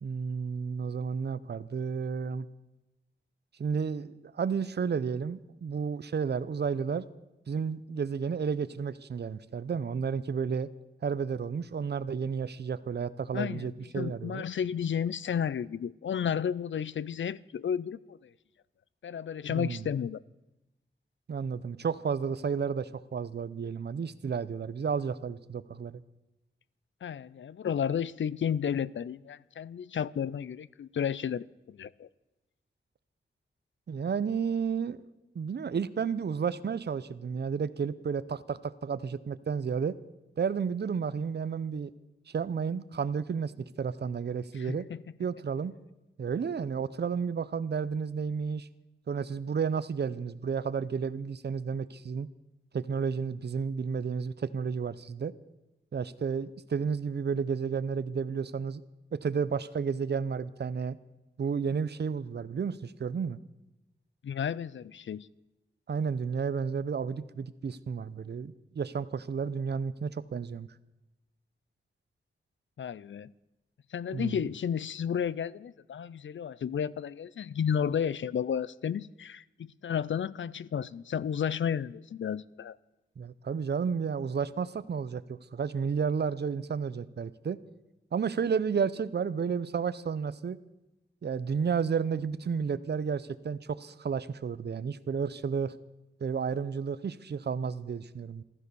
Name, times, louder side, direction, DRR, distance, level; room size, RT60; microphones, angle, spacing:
voice 1, 0.0-2.5 3.6-7.0 7.5-10.7 11.0-14.4 19.5-19.9 21.3-26.0 33.9-35.0 35.3-40.0 40.4-41.9 42.3-44.9 45.2-45.8 46.2-48.7 49.1-52.3 52.7-55.3 55.9-58.8 59.1-61.0 61.4-63.4 65.9-70.7 74.1-74.4 83.2-87.6 88.1-90.6 91.2-95.7 96.2-98.4, right 6 dB, 60° right, 0.7 m, -32 dB
voice 2, 13.3-18.3 19.0-20.2 27.0-32.1 44.7-45.0 64.2-65.3 72.8-73.3 73.9-82.8, left 8 dB, 80° left, 0.5 m, -32 dB
15.0 x 13.0 x 6.9 m
wide cardioid pair, 115°, 19 cm